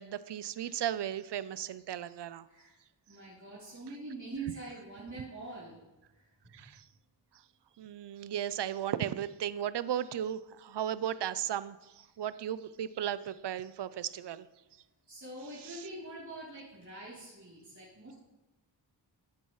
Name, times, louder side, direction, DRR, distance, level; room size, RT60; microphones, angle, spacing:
voice 1, 0.0-2.5 6.5-6.9 7.8-14.5 15.6-15.8, right 10 dB, 65° right, 16 dB, 0.6 m, -35 dB
voice 2, 2.5-2.8 3.1-5.8 6.1-6.3 15.1-18.1, right 3 dB, 40° right, -8 dB, 3.4 m, -44 dB
14.0 x 9.7 x 3.1 m, 1.0 s
wide cardioid pair, 60°, 45 cm